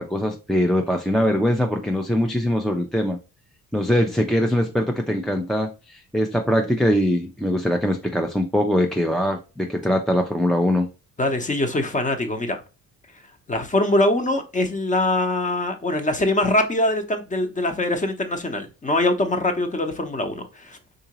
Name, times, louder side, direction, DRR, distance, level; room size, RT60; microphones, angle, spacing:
voice 1, 0.0-3.2 3.7-10.9, equal, ahead, 0.3 m, -22 dB
voice 2, 11.2-12.6 13.5-20.8, left 1 dB, 20° left, 0.7 m, -23 dB
3.8 x 2.7 x 2.8 m
cardioid pair, 95°, 37 cm